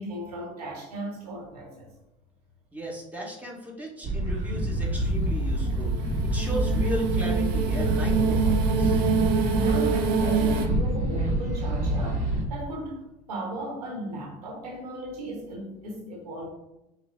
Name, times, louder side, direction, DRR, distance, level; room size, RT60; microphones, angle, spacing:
voice 1, 0.0-1.9 9.5-13.0 13.3-16.5, right 1 dB, 85° right, 0 dB, 1.1 m, -36 dB
voice 2, 2.7-9.0, equal, 10° right, -3 dB, 1.6 m, -36 dB
sound 1, 4.0-12.4, right 1 dB, 40° right, 1.2 m, -26 dB
sound 2, 5.2-10.7, right 6 dB, 60° right, 0.7 m, -27 dB
5.6 x 2.2 x 3.8 m, 0.91 s
hypercardioid pair, 70°, 19 cm